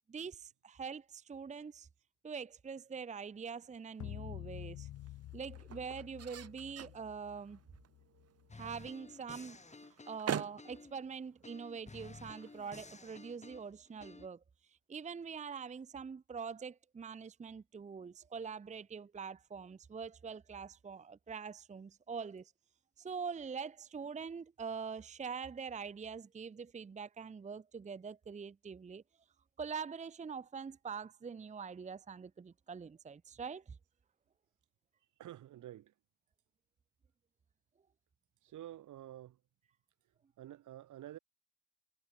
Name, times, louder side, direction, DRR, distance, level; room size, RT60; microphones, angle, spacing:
voice 1, 0.1-1.9 2.2-4.9 5.3-7.6 8.5-9.6 10.1-14.4 14.7-22.5 23.0-29.0 29.6-33.8, right 6 dB, 25° right, 0.7 m, -44 dB
sound 1, 3.4-13.7, right 9 dB, 55° right, 2.1 m, -48 dB
sound 2, 4.0-8.5, left 14 dB, 80° left, 2.7 m, -49 dB
sound 3, 8.5-11.0 11.4-14.3, left 3 dB, 20° left, 7.1 m, -53 dB
voice 2, 35.2-35.9 38.4-39.4 40.4-41.2, right 13 dB, 80° right, 5.6 m, -49 dB
cardioid pair, 90°, 30 cm